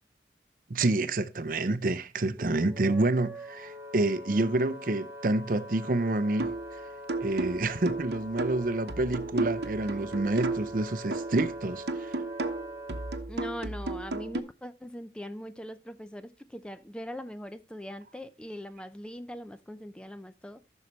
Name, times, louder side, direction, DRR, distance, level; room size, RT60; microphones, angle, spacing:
voice 1, 0.7-6.5 7.2-12.2, right 2 dB, 50° right, 0.6 m, -28 dB
Wind instrument woodwind instrument, 2.4-13.2, equal, 15° right, 1.1 m, -43 dB
sound 1, 6.4-6.7 7.1-10.8 11.1-14.4, right 2 dB, 75° right, 0.9 m, -33 dB
voice 2, 13.3-20.6, equal, 5° left, 0.4 m, -41 dB
13.5 x 6.5 x 3.1 m
head